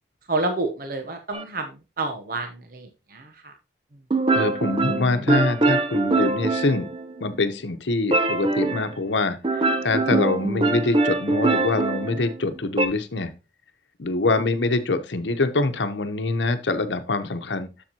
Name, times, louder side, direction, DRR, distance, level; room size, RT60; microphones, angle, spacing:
voice 1, 0.3-3.5, right 2 dB, 55° right, 5 dB, 0.9 m, -29 dB
sound 1, 1.3-1.4 4.1-7.4 8.1-8.9 9.4-12.9, right 2 dB, 30° right, 0.7 m, -23 dB
voice 2, 4.3-6.9 7.2-13.3 14.0-17.7, left 3 dB, 90° left, 9 dB, 0.9 m, -24 dB
7.4 x 7.1 x 2.9 m, 0.28 s
head